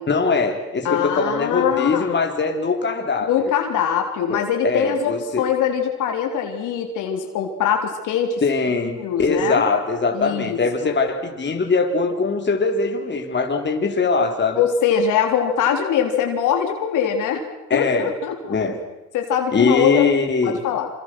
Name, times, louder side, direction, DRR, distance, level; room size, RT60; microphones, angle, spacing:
voice 1, 0.1-3.5 4.3-5.4 8.4-14.6 17.7-18.1 18.5-18.8 19.5-20.6, left 4 dB, 35° left, 4 dB, 3.7 m, -21 dB
voice 2, 0.8-2.1 3.3-8.4 9.0-9.6 10.1-11.0 14.5-17.4 17.7-18.6 19.1-20.1 20.4-20.9, left 8 dB, 90° left, 3 dB, 3.8 m, -22 dB
27.5 x 27.0 x 6.2 m, 1.0 s
cardioid pair, 90°, 30 cm